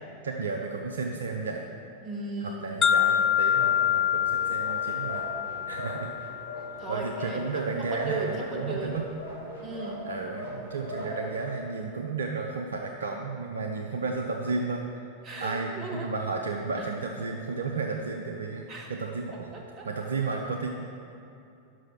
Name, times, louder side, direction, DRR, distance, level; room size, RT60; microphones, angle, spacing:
voice 1, 0.2-1.7 2.4-5.3 5.7-6.1 6.9-9.1 10.0-14.9 15.4-19.6 19.8-20.7, right 4 dB, 70° right, 2 dB, 0.5 m, -33 dB
voice 2, 2.0-2.8 6.6-8.9 9.6-10.0 15.2-16.1 18.7-18.9 19.5-19.9, right 3 dB, 30° right, 0 dB, 1.3 m, -36 dB
sound 1, 2.8-6.8, left 9 dB, 25° left, 0.4 m, -26 dB
sound 2, 3.5-11.5, left 1 dB, 80° left, 1.5 m, -41 dB
6.2 x 5.7 x 5.9 m, 2.7 s
figure-of-eight pair, 90°, 0 cm